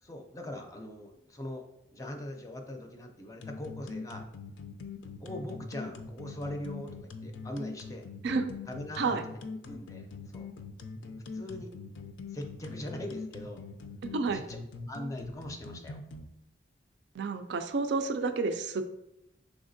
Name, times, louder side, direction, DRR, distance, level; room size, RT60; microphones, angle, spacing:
voice 1, 0.0-1.7 1.9-4.3 5.2-8.1 8.7-9.2 9.6-10.5 11.3-11.7 12.3-13.7 14.3-14.6 14.9-16.0, left 1 dB, 20° left, 3 dB, 0.5 m, -41 dB
sound 1, 3.4-16.2, left 4 dB, 80° left, 0.4 m, -42 dB
voice 2, 14.1-14.4 17.1-18.8, right 4 dB, 65° right, 7 dB, 0.4 m, -30 dB
4.8 x 3.5 x 2.6 m, 0.82 s
head